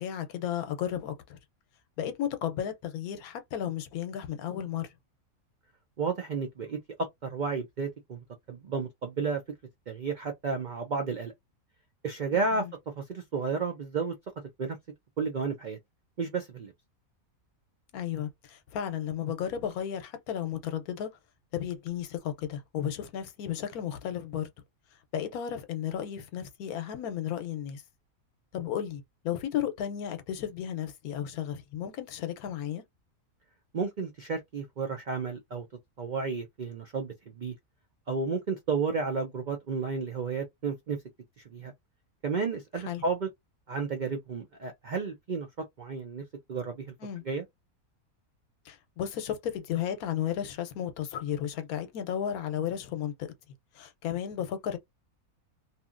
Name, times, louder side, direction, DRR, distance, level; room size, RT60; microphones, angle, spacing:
voice 1, 0.0-1.4 2.0-4.9 12.3-12.7 17.9-21.1 21.5-24.5 25.1-27.8 28.5-32.8 42.9-43.0 47.0-47.2 48.6-53.3 53.7-54.8, left 9 dB, 85° left, 1.1 m, -34 dB
voice 2, 6.0-9.4 9.9-11.3 12.0-12.7 13.0-14.2 14.6-14.8 15.2-15.8 16.2-16.7 33.7-35.7 36.0-37.5 38.1-41.0 41.4-41.7 42.2-43.3 43.7-46.2 46.5-46.9 47.3-47.4, right 4 dB, 85° right, 0.4 m, -32 dB
2.8 x 2.6 x 2.4 m
omnidirectional pair, 1.5 m